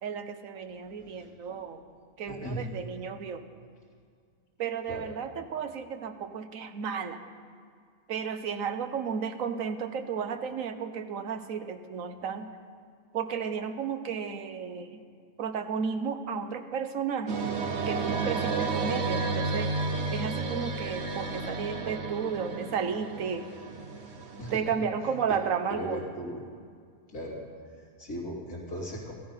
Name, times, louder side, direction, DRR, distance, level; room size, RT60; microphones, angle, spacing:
voice 1, 0.0-1.8 2.2-3.4 4.6-7.2 8.1-12.5 13.1-15.0 15.4-17.4 17.9-19.7 20.1-23.5 24.5-26.1, right 6 dB, 65° right, 8 dB, 1.3 m, -33 dB
voice 2, 0.8-1.6 2.3-2.6 4.9-5.1 24.4-24.6 25.0-25.4 25.7-26.4 27.1-27.4 27.8-29.1, equal, 90° left, -4 dB, 3.2 m, -38 dB
sound 1, 17.3-24.6, right 3 dB, 50° right, 1.2 m, -32 dB
14.5 x 13.5 x 5.6 m, 2.1 s
omnidirectional pair, 1.5 m